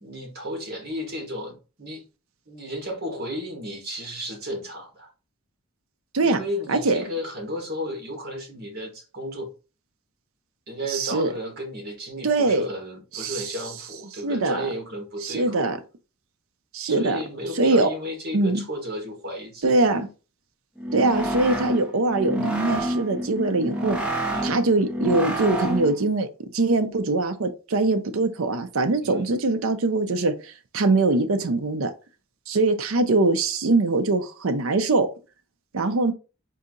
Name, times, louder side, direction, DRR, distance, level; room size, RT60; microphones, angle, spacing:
voice 1, 0.0-2.0 2.5-5.1 6.2-9.5 10.7-15.7 16.8-19.9 24.2-24.6 29.0-29.3, equal, 45° right, 1.6 m, -33 dB
voice 2, 6.7-7.0 10.9-11.3 12.2-12.7 13.1-13.5 14.2-14.6 15.2-15.8 16.7-17.2 17.6-17.9 18.3-18.6 19.6-20.1 20.9-24.0 24.4-26.3 26.5-31.9 32.5-35.1 35.7-36.1, right 2 dB, 65° right, 0.6 m, -22 dB
sound 1, 20.8-26.0, right 1 dB, 5° right, 0.7 m, -28 dB
4.1 x 2.7 x 3.7 m
head